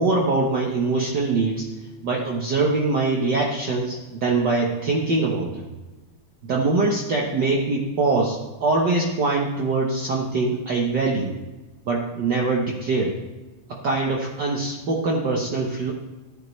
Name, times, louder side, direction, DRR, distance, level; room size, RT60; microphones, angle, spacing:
voice 1, 0.0-1.7 2.0-5.7 6.4-11.3 11.9-13.2 13.7-15.9, right 3 dB, 65° right, -2 dB, 1.0 m, -23 dB
15.5 x 11.0 x 3.2 m, 1.2 s
omnidirectional pair, 3.7 m